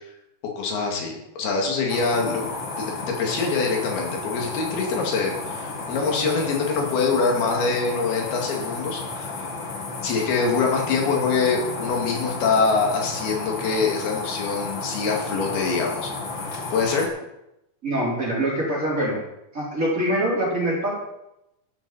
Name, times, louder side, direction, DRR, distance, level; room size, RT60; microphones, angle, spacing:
voice 1, 0.6-2.5 2.8-9.5 10.0-17.1, left 4 dB, 70° left, 0 dB, 4.2 m, -24 dB
sound 1, 1.9-17.1, left 3 dB, 55° left, 1.4 m, -32 dB
voice 2, 17.8-19.2 19.5-20.9, right 1 dB, 20° right, -6 dB, 4.4 m, -24 dB
12.5 x 12.0 x 4.3 m, 0.86 s
omnidirectional pair, 4.6 m